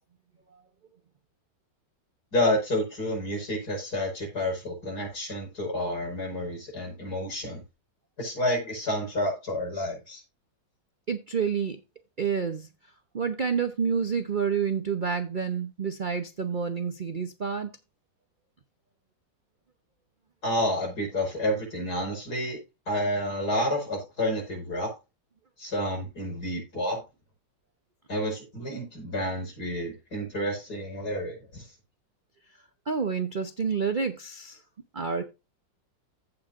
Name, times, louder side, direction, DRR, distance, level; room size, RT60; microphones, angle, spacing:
voice 1, 2.3-7.6 8.2-10.2 20.4-22.6 22.9-24.9 25.6-27.0 28.1-31.6, left 1 dB, 55° left, 5.7 m, -29 dB
voice 2, 11.1-11.8 12.2-12.7 13.1-17.7 32.9-34.6 34.9-35.2, right 6 dB, 40° right, 0.7 m, -28 dB
15.5 x 5.9 x 2.5 m
omnidirectional pair, 2.0 m